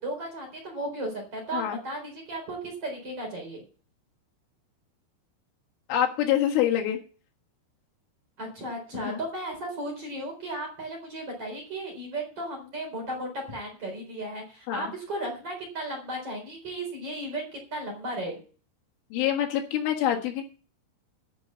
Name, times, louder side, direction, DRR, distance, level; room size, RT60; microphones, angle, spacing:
voice 1, 0.0-3.6 8.4-18.4, right 1 dB, 30° right, 1 dB, 4.4 m, -35 dB
voice 2, 5.9-7.0 8.9-9.2 14.7-14.9 19.1-20.4, left 11 dB, 75° left, 2 dB, 3.9 m, -26 dB
13.5 x 6.3 x 7.1 m, 0.39 s
omnidirectional pair, 5.8 m